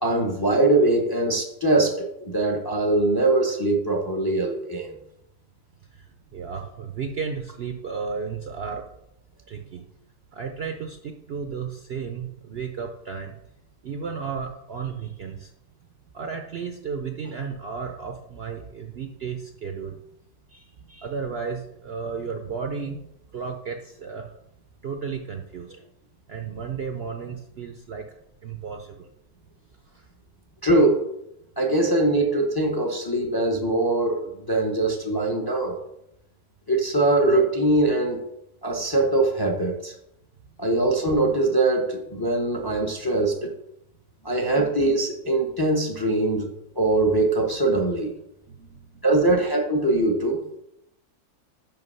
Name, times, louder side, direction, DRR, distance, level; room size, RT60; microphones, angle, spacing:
voice 1, 0.0-5.0 30.6-31.0 31.6-35.8 36.7-38.3 38.6-39.9 40.6-43.5 44.2-48.1 49.0-50.4, right 2 dB, 20° left, 2 dB, 0.6 m, -22 dB
voice 2, 5.9-8.9 9.5-9.9 10.3-13.3 13.8-15.5 16.1-20.0 20.5-23.1 23.3-24.3 24.8-25.9 26.3-28.1 28.4-29.1 29.9-30.0 44.2-44.4 48.5-49.0, right 6 dB, 60° right, 4 dB, 0.7 m, -34 dB
5.8 x 5.3 x 5.4 m, 0.80 s
omnidirectional pair, 1.6 m